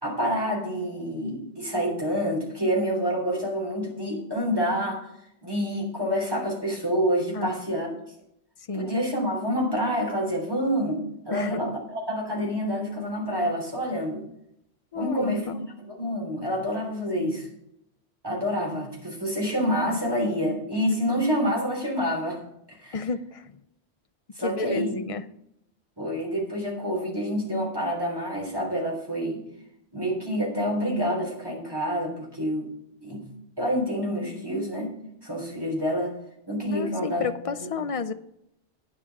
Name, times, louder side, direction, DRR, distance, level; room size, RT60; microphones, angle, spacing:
voice 1, 0.0-5.1 5.4-7.9 8.7-14.2 14.9-15.5 15.9-17.5 18.2-22.4 22.7-23.0 24.4-24.9 26.0-29.4 29.9-32.7 33.0-33.2 33.6-34.9 35.2-36.2 36.5-37.2, equal, 20° right, -2 dB, 3.3 m, -27 dB
voice 2, 11.3-11.8 14.9-15.7 21.1-21.2 22.9-23.5 24.4-25.2 36.7-38.1, left 5 dB, 45° left, 11 dB, 0.4 m, -31 dB
9.7 x 7.5 x 5.8 m, 0.76 s
omnidirectional pair, 1.1 m